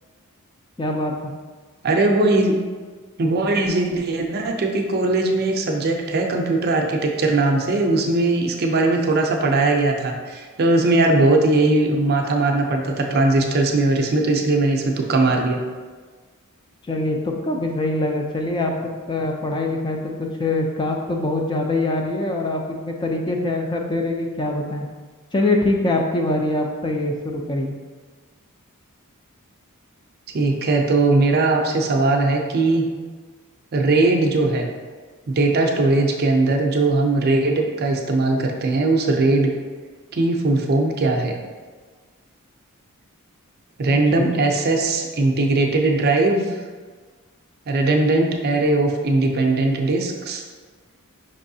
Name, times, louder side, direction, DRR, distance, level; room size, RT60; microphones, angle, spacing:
voice 1, 0.8-1.3 16.9-18.7 19.1-24.9 25.3-27.7 43.9-44.3, left 2 dB, 20° left, 2 dB, 0.3 m, -24 dB
voice 2, 1.8-2.6 3.2-15.6 30.3-32.9 33.7-34.7 35.3-39.5 40.1-41.3 43.8-46.6 47.7-50.4, right 2 dB, 45° right, 2 dB, 0.5 m, -19 dB
5.4 x 3.0 x 2.6 m, 1.5 s
head